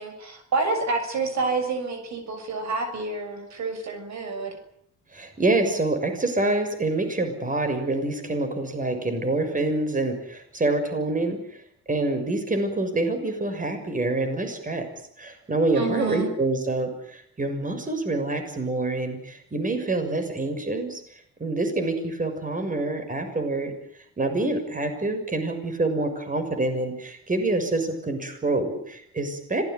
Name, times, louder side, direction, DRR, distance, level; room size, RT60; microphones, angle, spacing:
voice 1, 0.0-4.6 15.8-16.3, right 3 dB, 65° right, 7 dB, 6.9 m, -28 dB
voice 2, 5.1-11.4 11.9-14.9 15.2-21.0 21.4-23.7 24.2-29.6, right 2 dB, 25° right, 7 dB, 6.6 m, -26 dB
26.0 x 18.5 x 9.5 m, 0.71 s
cardioid pair, 90°, 30 cm